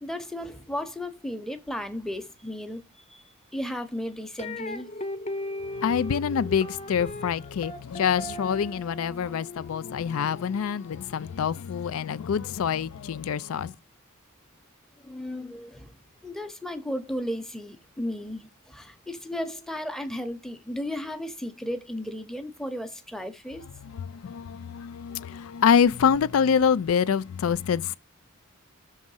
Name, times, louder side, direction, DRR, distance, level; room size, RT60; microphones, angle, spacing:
voice 1, 0.0-3.2 3.5-4.9 15.0-23.7, left 1 dB, ahead, 0.7 m, -35 dB
sound 1, 4.4-11.5, left 1 dB, 30° left, 0.9 m, -38 dB
voice 2, 5.8-13.7 23.8-28.0, left 7 dB, 75° left, 0.4 m, -26 dB
6.3 x 3.5 x 5.5 m
head